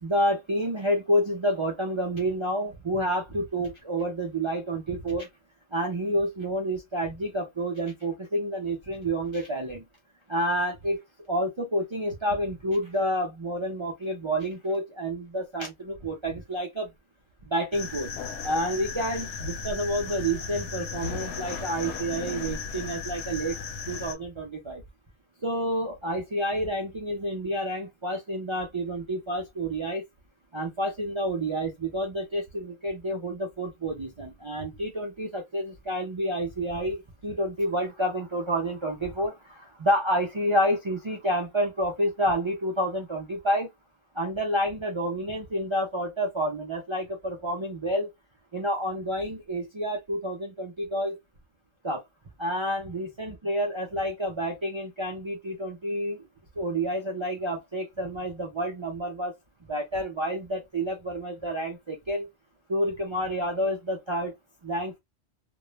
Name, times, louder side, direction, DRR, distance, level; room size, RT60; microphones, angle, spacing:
voice 1, 0.0-5.3 5.7-9.8 10.3-11.0 11.3-16.9 17.4-18.1 18.4-23.6 23.9-24.8 25.4-30.1 30.5-43.7 44.1-48.1 48.5-51.2 51.8-52.0 52.4-56.3 56.6-59.3 59.7-62.3 62.7-64.3 64.6-65.0, equal, 50° right, 0.3 m, -29 dB
sound 1, 17.7-24.1, left 5 dB, 65° left, 0.8 m, -35 dB
2.2 x 2.1 x 2.9 m
omnidirectional pair, 1.3 m